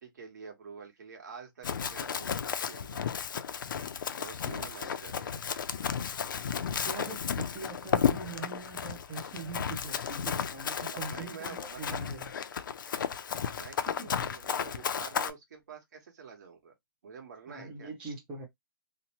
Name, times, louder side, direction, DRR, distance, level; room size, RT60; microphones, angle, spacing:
voice 1, 0.0-3.1 3.3-3.6 4.2-5.3 8.0-8.1 10.9-12.0 13.5-16.7 17.0-17.9, right 6 dB, 50° right, 1.2 m, -48 dB
Run, 1.6-15.3, left 7 dB, 60° left, 0.4 m, -33 dB
voice 2, 6.8-12.3 13.8-14.1 17.5-18.5, right 4 dB, 5° right, 0.4 m, -42 dB
2.7 x 2.1 x 2.8 m
hypercardioid pair, 170°, 12 cm